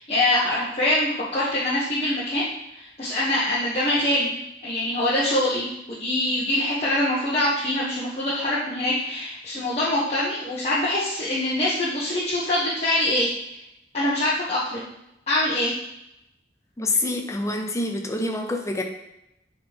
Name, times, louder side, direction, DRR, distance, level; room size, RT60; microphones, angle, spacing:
voice 1, 0.0-2.4 2.7-4.4 4.6-13.3 13.9-14.9 15.3-15.7, left 1 dB, 35° left, -9 dB, 1.3 m, -24 dB
voice 2, 16.8-18.8, left 2 dB, 15° left, 3 dB, 0.7 m, -26 dB
9.1 x 4.0 x 3.6 m, 0.85 s
head